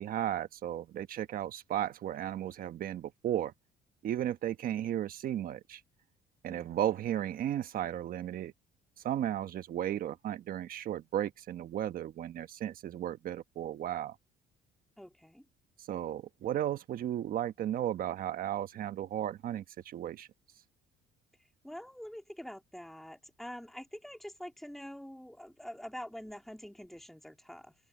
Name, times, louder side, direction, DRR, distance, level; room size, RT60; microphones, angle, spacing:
voice 1, 0.0-3.5 4.0-5.8 6.4-8.5 9.0-14.1 15.9-20.3, right 11 dB, 60° right, 1.2 m, -34 dB
voice 2, 6.5-6.9 15.0-15.4 21.4-27.7, equal, ahead, 2.6 m, -46 dB
cardioid pair, 110°, 17 cm